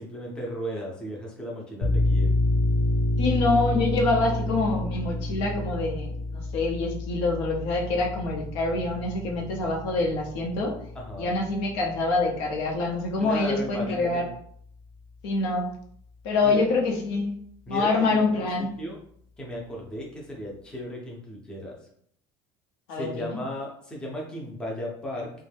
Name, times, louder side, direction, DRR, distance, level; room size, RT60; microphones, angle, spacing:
voice 1, 0.0-2.3 10.9-11.4 13.2-14.3 16.4-16.6 17.7-19.0 19.4-21.8 22.9-25.3, equal, 5° left, -3 dB, 0.5 m, -35 dB
sound 1, 1.8-13.1, left 1 dB, 40° left, 0.7 m, -29 dB
voice 2, 3.2-10.7 11.2-14.2 15.2-15.7 16.2-17.4 17.7-18.7 22.9-23.4, left 3 dB, 85° left, 0 dB, 0.7 m, -26 dB
2.6 x 2.2 x 3.3 m, 0.65 s
cardioid pair, 160°, 13 cm